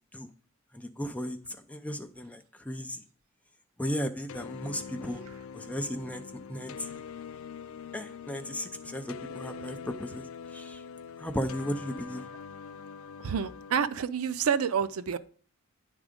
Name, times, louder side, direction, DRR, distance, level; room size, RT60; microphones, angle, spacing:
voice 1, 0.7-1.4 1.7-3.0 3.8-5.2 5.5-6.2 6.5-7.0 7.9-10.3 10.5-10.8 11.2-12.2, equal, 5° left, 0.5 m, -35 dB
sound 1, 4.3-13.9, left 6 dB, 75° left, 0.4 m, -43 dB
voice 2, 13.2-15.2, right 7 dB, 80° right, 0.5 m, -28 dB
9.5 x 3.7 x 5.0 m
head